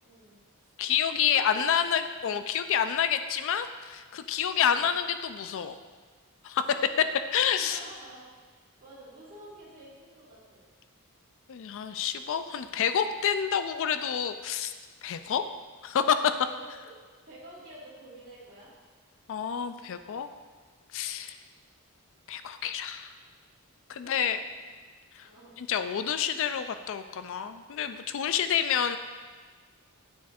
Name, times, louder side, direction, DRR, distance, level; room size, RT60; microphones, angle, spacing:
voice 1, 0.0-0.7 1.0-2.5 4.6-4.8 6.7-7.2 7.6-10.6 12.7-13.0 16.5-16.9 17.2-18.7 24.0-24.2 24.6-24.9 25.2-25.5 25.9-26.1, right 1 dB, 40° right, -9 dB, 1.6 m, -51 dB
voice 2, 0.8-5.7 6.4-6.7 7.3-7.8 11.5-14.7 15.0-15.4 15.8-16.3 19.3-20.3 20.9-21.4 22.3-23.1 23.9-24.4 25.2-25.3 25.6-29.0, left 8 dB, 60° left, 9 dB, 0.4 m, -28 dB
9.3 x 4.3 x 2.4 m, 1.5 s
head